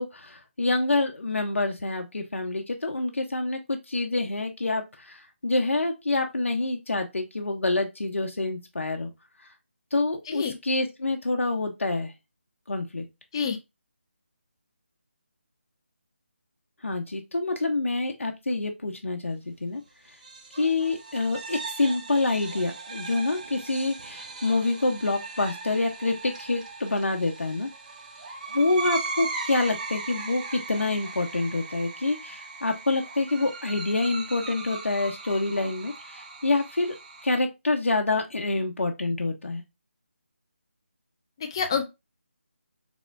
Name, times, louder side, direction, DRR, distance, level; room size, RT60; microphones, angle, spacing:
voice 1, 0.0-9.1 9.9-12.1 12.7-13.0 16.8-19.8 20.5-27.7 28.5-36.9 37.2-39.6, left 2 dB, 90° left, 0.7 m, -27 dB
voice 2, 10.3-10.6 13.3-13.6 41.4-41.8, left 6 dB, 20° left, 0.4 m, -27 dB
sound 1, 20.1-37.4, right 3 dB, 35° right, 0.7 m, -38 dB
3.5 x 3.1 x 2.5 m
figure-of-eight pair, 165°, 7 cm